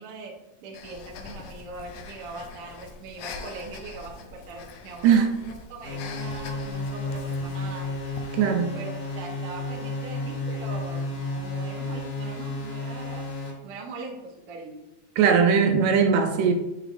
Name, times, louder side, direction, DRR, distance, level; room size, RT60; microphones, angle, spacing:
voice 1, 0.0-7.9 8.7-13.2 13.6-14.8, right 3 dB, 65° right, 0 dB, 1.5 m, -41 dB
Breathing, 0.7-8.4, left 5 dB, 85° left, 1.3 m, -43 dB
sound 1, 5.8-13.5, left 2 dB, 60° left, 2.5 m, -32 dB
voice 2, 8.3-8.7 15.2-16.5, right 6 dB, 90° right, 5 dB, 2.2 m, -19 dB
8.0 x 4.9 x 2.5 m, 0.97 s
omnidirectional pair, 3.4 m